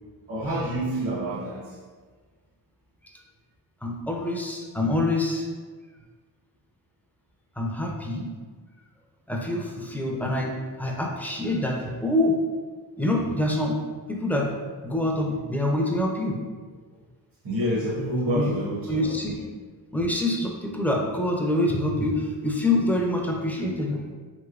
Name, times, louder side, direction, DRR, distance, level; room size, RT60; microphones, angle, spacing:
voice 1, 0.3-1.7 17.4-19.4, right 1 dB, 60° right, -5 dB, 0.8 m, -28 dB
voice 2, 3.8-5.5 7.6-8.3 9.3-10.5 10.8-12.4 13.0-13.8 14.1-14.5 14.8-16.4 18.3-18.5 18.9-19.4 19.9-24.1, left 1 dB, 5° left, 0 dB, 0.3 m, -26 dB
3.1 x 2.9 x 2.4 m, 1.5 s
cardioid pair, 85°, 42 cm